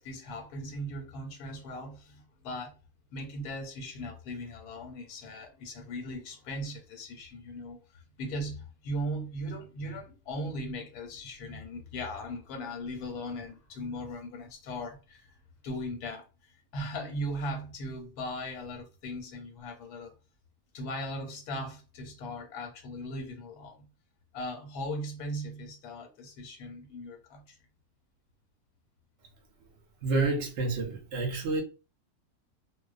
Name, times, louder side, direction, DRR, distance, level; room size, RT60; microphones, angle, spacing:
voice 1, 0.0-2.7 3.1-15.4 15.6-20.1 20.7-23.9 24.3-27.6, equal, 90° left, 1.2 m, -38 dB
voice 2, 30.0-31.6, right 3 dB, 60° right, 0.8 m, -29 dB
2.5 x 2.0 x 2.4 m
omnidirectional pair, 1.6 m